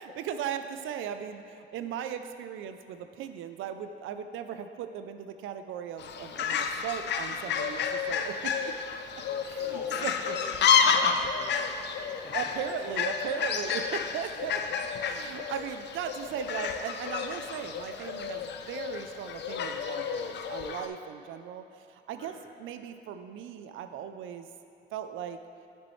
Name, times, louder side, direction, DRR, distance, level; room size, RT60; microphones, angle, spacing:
voice 1, 0.0-8.7 9.4-10.4 12.3-14.6 15.0-24.5 24.9-25.4, right 9 dB, 80° right, 9 dB, 0.5 m, -38 dB
Fowl, 6.0-20.9, left 6 dB, 60° left, 0.5 m, -30 dB
voice 2, 9.4-10.1 10.4-12.3 22.1-22.4, left 2 dB, 25° left, -1 dB, 1.3 m, -47 dB
9.4 x 7.0 x 3.1 m, 2.6 s
cardioid pair, 90°, 20 cm